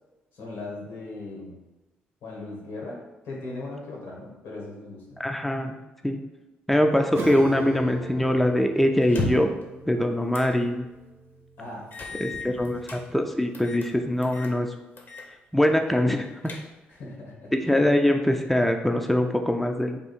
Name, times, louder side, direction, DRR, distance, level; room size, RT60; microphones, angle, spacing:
voice 1, 0.3-1.6 2.2-5.2 11.6-13.2 16.9-17.8, left 2 dB, 80° left, -3 dB, 1.4 m, -39 dB
voice 2, 5.2-5.8 6.0-6.2 6.7-9.5 9.9-10.8 12.2-14.7 15.5-16.3 17.7-20.0, left 1 dB, 5° left, 4 dB, 0.4 m, -23 dB
Acoustic guitar / Strum, 7.1-13.1, right 3 dB, 55° right, 0.6 m, -39 dB
sound 1, 9.0-9.6 10.3-10.6 11.0-11.1 11.9-13.0 13.5-13.9 14.2-14.5 15.0-15.3 15.6-15.7 16.2-17.0, left 2 dB, 45° left, 0.8 m, -34 dB
3.6 x 2.4 x 4.3 m, 1.1 s
hypercardioid pair, 50°, 5 cm